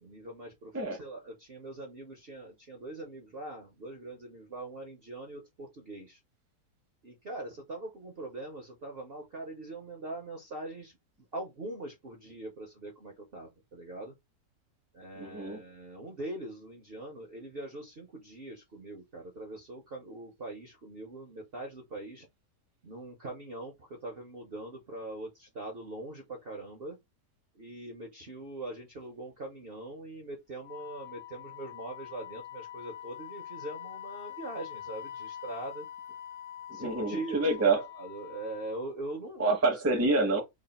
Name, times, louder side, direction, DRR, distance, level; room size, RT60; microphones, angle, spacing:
voice 1, 0.0-6.2 7.0-10.9 11.3-14.1 14.9-22.3 22.8-27.0 27.5-35.9 36.7-37.5 37.9-39.5, right 2 dB, 50° right, 0.7 m, -42 dB
voice 2, 15.2-15.6 36.7-37.8 39.4-40.4, right 3 dB, 15° right, 0.5 m, -27 dB
Wind instrument woodwind instrument, 30.6-38.9, left 11 dB, 80° left, 1.2 m, -44 dB
3.2 x 2.4 x 4.0 m
omnidirectional pair, 1.9 m